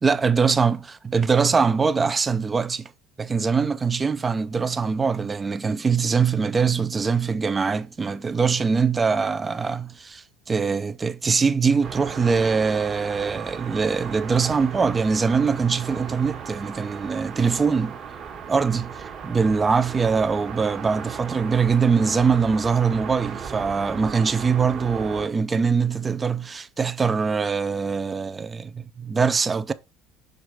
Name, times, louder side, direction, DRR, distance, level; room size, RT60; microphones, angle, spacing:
voice 1, 0.0-0.8 1.0-2.9 3.2-18.0 18.5-29.7, right 5 dB, 20° right, 0.5 m, -22 dB
sound 1, 11.8-25.3, right 6 dB, 40° right, 1.3 m, -36 dB
6.5 x 3.5 x 4.6 m
cardioid pair, 145°, 0 cm